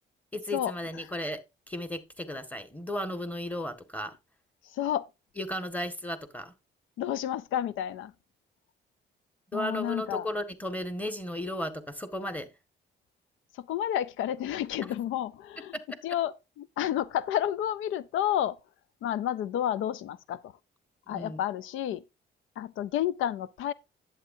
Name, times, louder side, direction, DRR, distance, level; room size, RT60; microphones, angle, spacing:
voice 1, 0.3-1.4 1.7-4.1 5.4-6.5 9.5-12.5 14.8-14.9 21.1-21.4, left 1 dB, 5° left, 1.7 m, -35 dB
voice 2, 4.6-5.1 7.0-8.1 9.5-10.3 13.5-15.8 16.0-18.6 19.0-20.5 21.1-22.0 22.6-23.7, left 11 dB, 80° left, 0.5 m, -30 dB
11.0 x 8.4 x 2.7 m
cardioid pair, 90°, 20 cm